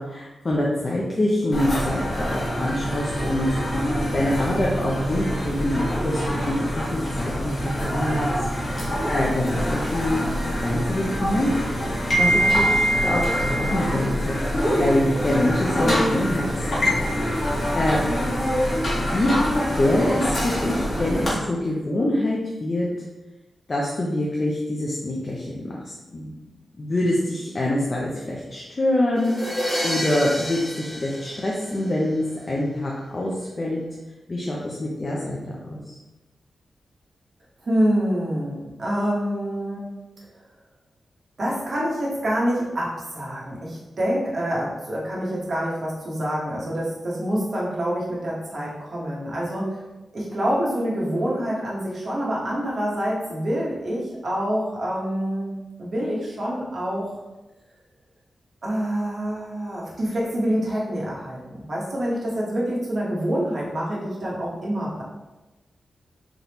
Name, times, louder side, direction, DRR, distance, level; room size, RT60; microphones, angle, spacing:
voice 1, 0.0-7.5 7.8-8.3 9.1-10.3 10.6-11.9 12.2-16.5 16.8-18.0 19.0-19.3 19.8-22.9 23.7-26.3 26.8-29.6 29.8-33.3 33.6-33.8 34.3-35.4 35.6-35.9, left 1 dB, 30° left, -4 dB, 0.5 m, -25 dB
sound 1, 1.5-21.3, equal, 50° left, 1.2 m, -25 dB
voice 2, 12.1-12.6 37.6-39.9 41.4-49.8 50.1-55.5 55.8-57.1 58.6-65.0, equal, 45° right, -5 dB, 1.1 m, -26 dB
sound 2, 29.2-32.1, equal, 5° left, 0.9 m, -30 dB
4.1 x 3.5 x 2.9 m, 1.1 s
wide cardioid pair, 170°, 0 cm